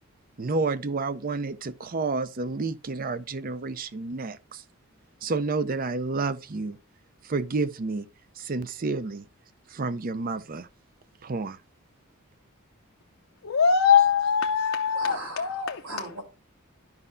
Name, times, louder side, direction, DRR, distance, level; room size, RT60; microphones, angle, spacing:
voice 1, 0.4-4.6 5.2-6.8 7.2-8.1 8.4-9.2 9.7-10.7 11.2-11.6, right 3 dB, 40° right, 0.5 m, -30 dB
voice 2, 13.4-15.8, left 7 dB, 65° left, 0.6 m, -22 dB
voice 3, 14.9-16.2, right 1 dB, 70° right, 3.6 m, -38 dB
12.0 x 5.4 x 2.6 m
head